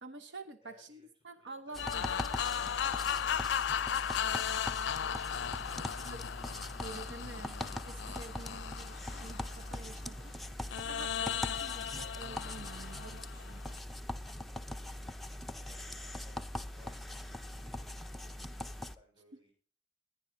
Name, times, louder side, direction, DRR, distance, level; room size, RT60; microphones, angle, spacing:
voice 1, 0.0-2.1 6.0-6.2 6.8-10.3 10.9-13.6, right 3 dB, 85° right, 7 dB, 1.1 m, -48 dB
voice 2, 0.6-1.1 1.4-6.3 15.5-17.6 18.9-19.5, left 1 dB, 25° right, 3 dB, 6.8 m, -63 dB
sound 1, 1.7-19.0, left 1 dB, ahead, 0.6 m, -42 dB
sound 2, 1.8-10.1 10.7-13.8, left 8 dB, 80° left, 0.4 m, -36 dB
20.0 x 10.5 x 2.8 m, 0.39 s
head